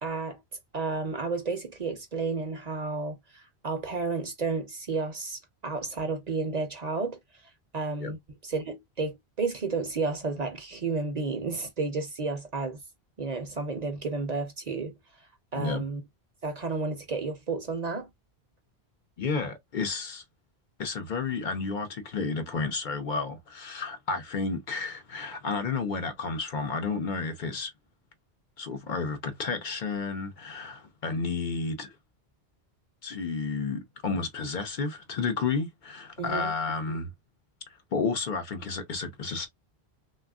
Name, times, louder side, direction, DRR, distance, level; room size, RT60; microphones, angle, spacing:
voice 1, 0.0-0.4 0.7-7.2 7.7-12.8 13.2-14.9 15.5-16.0 16.4-18.1 36.2-36.5 36.9-37.0, right 4 dB, 45° right, 0.7 m, -32 dB
voice 2, 19.2-20.2 20.8-27.7 28.6-31.9 33.0-37.1 37.9-39.5, left 4 dB, 55° left, 0.6 m, -31 dB
3.2 x 2.3 x 2.2 m
omnidirectional pair, 1.0 m